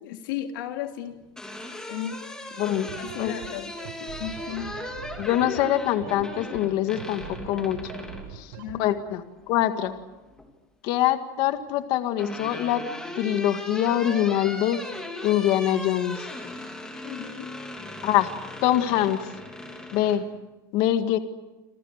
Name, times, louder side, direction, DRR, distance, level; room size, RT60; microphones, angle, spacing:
voice 1, 0.0-1.2 1.9-2.6 2.9-4.8 8.6-8.9 17.0-17.6, left 10 dB, 85° left, 5 dB, 3.1 m, -35 dB
sound 1, 1.1-8.3 9.8-10.5 11.7-20.2, left 1 dB, 5° left, 3.2 m, -38 dB
sound 2, 2.7-8.7, right 10 dB, 75° right, 4.5 m, -41 dB
voice 2, 5.2-7.8 8.3-8.5 8.8-10.0 10.8-12.8 13.2-14.8 15.2-16.2 18.0-18.3 18.6-19.3 19.9-20.2 20.7-21.2, left 12 dB, 45° left, 8 dB, 1.9 m, -24 dB
28.0 x 27.5 x 6.6 m, 1.1 s
supercardioid pair, 165°, 11 cm